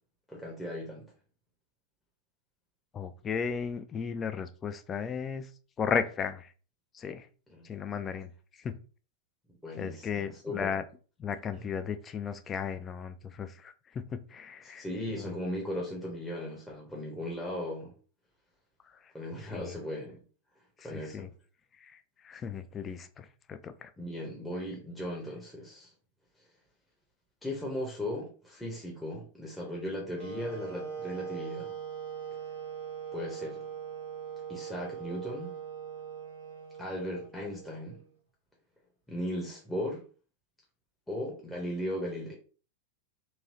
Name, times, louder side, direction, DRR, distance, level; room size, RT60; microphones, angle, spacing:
voice 1, 0.3-1.1 7.5-7.7 9.6-10.7 11.5-11.6 14.6-17.9 19.1-20.1 20.8-21.3 24.0-25.9 27.4-31.8 33.1-33.6 34.5-35.6 36.8-38.0 39.1-40.0 41.1-42.3, left 1 dB, 5° left, 0.8 m, -37 dB
voice 2, 2.9-5.5 5.8-6.5 6.9-7.3 7.6-8.3 8.6-8.8 9.8-10.8 11.2-14.8 15.1-15.3 19.5-19.7 20.9-21.3 21.8-23.9, left 6 dB, 25° left, 0.3 m, -35 dB
Wind instrument woodwind instrument, 30.2-38.1, right 7 dB, 90° left, 1.0 m, -41 dB
3.1 x 2.7 x 2.7 m
figure-of-eight pair, 90°, 0 cm